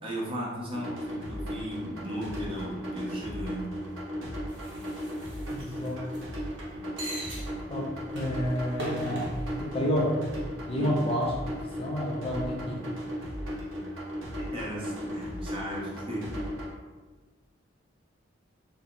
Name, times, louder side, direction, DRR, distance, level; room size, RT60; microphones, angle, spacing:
voice 1, 0.0-3.7 10.7-11.0 14.4-16.3, equal, 25° right, -4 dB, 0.8 m, -36 dB
sound 1, 0.7-16.7, equal, 90° right, 1.0 m, -36 dB
sound 2, 4.5-6.2 7.0-7.5 8.0-9.5, right 1 dB, 60° right, 0.9 m, -39 dB
voice 2, 5.5-6.0 7.7-7.9 8.1-9.3 9.6-10.2 10.7-12.8, equal, 30° left, -3 dB, 0.5 m, -30 dB
4.3 x 2.0 x 3.8 m, 1.3 s
head